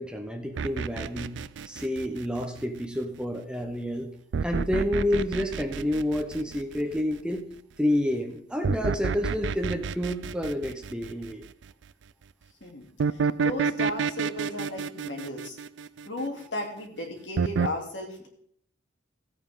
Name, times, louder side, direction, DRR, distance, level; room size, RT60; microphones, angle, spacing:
voice 1, 0.0-1.4 1.7-4.1 4.4-7.5 7.8-11.4, left 1 dB, 5° right, 5 dB, 0.9 m, -29 dB
sound 1, 0.6-2.8 4.3-7.0 8.6-11.5 13.0-16.4 17.4-17.7, right 5 dB, 65° right, 0.4 m, -29 dB
voice 2, 12.6-15.6 16.1-18.3, left 1 dB, 65° left, 1 dB, 2.8 m, -35 dB
16.0 x 8.7 x 3.8 m, 0.66 s
head